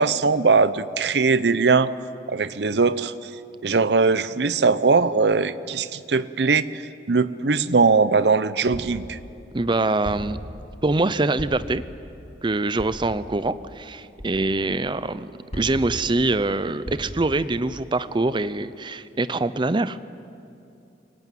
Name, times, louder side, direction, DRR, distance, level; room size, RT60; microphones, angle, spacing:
voice 1, 0.0-1.9 2.3-3.3 3.6-6.8 7.1-9.2, right 4 dB, 70° right, 15 dB, 0.7 m, -20 dB
sound 1, 8.7-9.1 10.0-10.5 11.4-11.7 12.8-13.1 14.2-14.4 15.5-15.9 16.8-17.3, equal, 35° left, 4.8 m, -35 dB
voice 2, 9.5-10.4 10.8-11.8 12.4-20.0, right 2 dB, 25° right, 14 dB, 0.6 m, -24 dB
24.5 x 18.0 x 9.2 m, 2.6 s
head